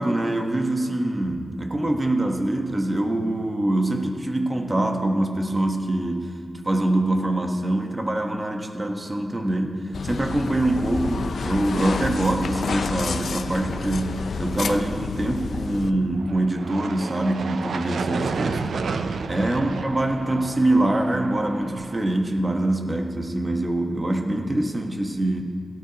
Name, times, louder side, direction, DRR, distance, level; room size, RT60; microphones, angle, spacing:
voice 1, 0.0-6.3 6.6-18.9 19.3-25.4, right 1 dB, 25° right, 3 dB, 1.1 m, -24 dB
sound 1, 9.9-15.9, left 5 dB, 80° left, 0.4 m, -29 dB
sound 2, 16.1-22.0, right 4 dB, 85° right, 0.5 m, -31 dB
17.5 x 11.5 x 2.9 m, 2.4 s
wide cardioid pair, 85°, 0 cm